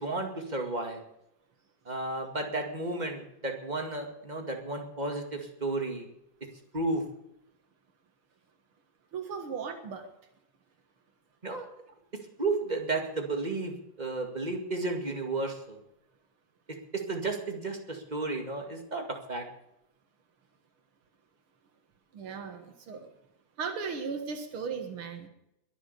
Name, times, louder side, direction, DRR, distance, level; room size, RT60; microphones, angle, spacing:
voice 1, 0.0-1.0 1.9-6.1 6.7-7.0 11.4-11.7 12.4-15.8 16.9-19.5, right 2 dB, 20° right, 3 dB, 2.2 m, -33 dB
voice 2, 9.1-10.0 22.1-23.1 23.6-25.3, right 5 dB, 85° right, 5 dB, 2.5 m, -36 dB
22.0 x 7.4 x 6.8 m, 0.82 s
omnidirectional pair, 2.3 m